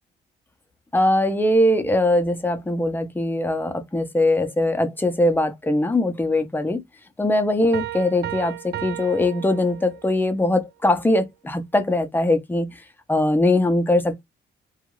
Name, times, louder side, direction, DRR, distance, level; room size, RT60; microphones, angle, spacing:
voice 1, 0.9-6.8 7.2-14.2, left 1 dB, 10° left, 0.7 m, -21 dB
Piano, 7.7-10.2, right 12 dB, 55° right, 0.5 m, -34 dB
2.4 x 2.3 x 3.1 m
cardioid pair, 90°, 20 cm